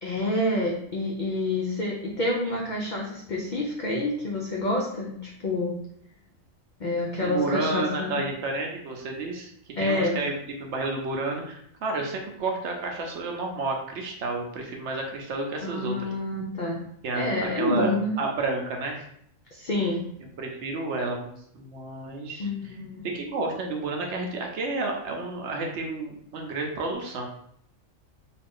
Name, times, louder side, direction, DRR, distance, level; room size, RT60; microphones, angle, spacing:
voice 1, 0.0-5.7 6.8-8.2 9.8-10.2 15.6-16.8 17.1-18.1 19.5-20.0 22.4-23.1, left 1 dB, 70° left, -2 dB, 0.4 m, -28 dB
voice 2, 7.2-9.5 9.8-16.1 17.0-17.9 18.2-19.0 20.4-22.5 23.0-27.3, right 3 dB, 65° right, 1 dB, 0.8 m, -31 dB
2.7 x 2.4 x 3.5 m, 0.70 s
omnidirectional pair, 1.4 m